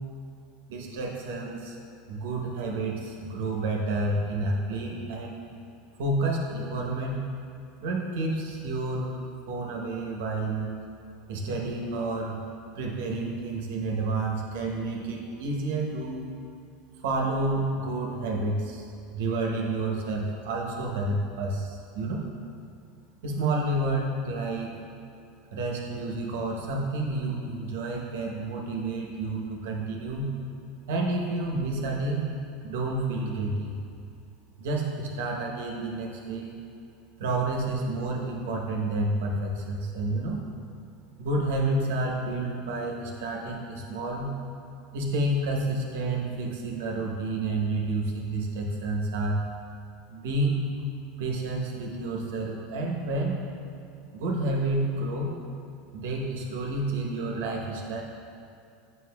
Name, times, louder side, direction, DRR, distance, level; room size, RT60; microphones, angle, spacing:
voice 1, 0.7-1.8 2.1-5.3 6.0-7.2 7.8-9.2 9.5-10.7 11.3-12.4 12.8-16.2 17.0-18.9 19.1-22.2 23.2-24.7 25.5-30.3 30.9-32.3 32.6-33.8 34.6-36.6 37.2-40.4 41.2-44.3 44.9-49.4 50.1-50.6 51.2-53.4 54.1-55.3 55.9-58.0, right 2 dB, 80° right, 0 dB, 0.9 m, -29 dB
7.6 x 5.9 x 2.3 m, 2.6 s
supercardioid pair, 110°, 0 cm